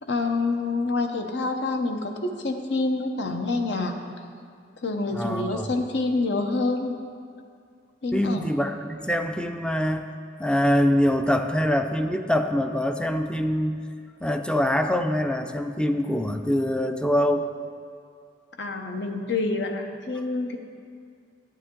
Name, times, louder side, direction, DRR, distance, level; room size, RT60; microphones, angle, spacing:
voice 1, 0.0-3.9 4.8-6.9 8.0-8.4 18.6-20.6, left 3 dB, 70° left, 4 dB, 0.8 m, -27 dB
voice 2, 5.1-5.7 8.1-10.0 10.4-13.8 14.2-17.5, equal, 5° left, 7 dB, 0.4 m, -24 dB
11.5 x 8.7 x 3.7 m, 2.3 s
head